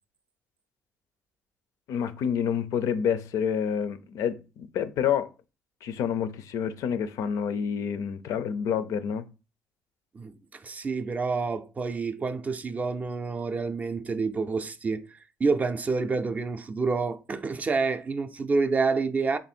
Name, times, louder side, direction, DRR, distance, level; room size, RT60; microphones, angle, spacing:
voice 1, 1.9-5.3 5.8-9.3, left 8 dB, 75° left, 0.4 m, -28 dB
voice 2, 10.1-19.4, right 4 dB, 25° right, 0.4 m, -28 dB
3.3 x 2.6 x 4.3 m
cardioid pair, 115°, 6 cm